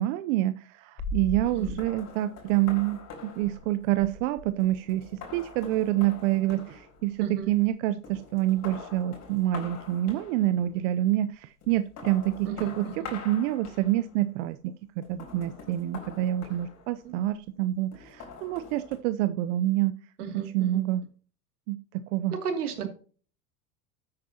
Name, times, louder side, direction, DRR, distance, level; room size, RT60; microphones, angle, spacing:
voice 1, 0.0-5.0 5.3-19.9 20.3-21.0 21.7-22.4, right 14 dB, 55° right, 12 dB, 0.7 m, -27 dB
sound 1, 1.0-7.7 8.0-10.8 11.6-14.3 15.0-17.2 17.9-19.0, left 3 dB, 35° left, 4.1 m, -42 dB
voice 2, 1.4-1.8 7.2-7.5 12.5-13.1 17.0-17.1 20.2-20.9 22.3-22.9, right 7 dB, 80° right, 5 dB, 2.6 m, -34 dB
13.0 x 8.7 x 2.8 m, 0.40 s
hypercardioid pair, 100°, 44 cm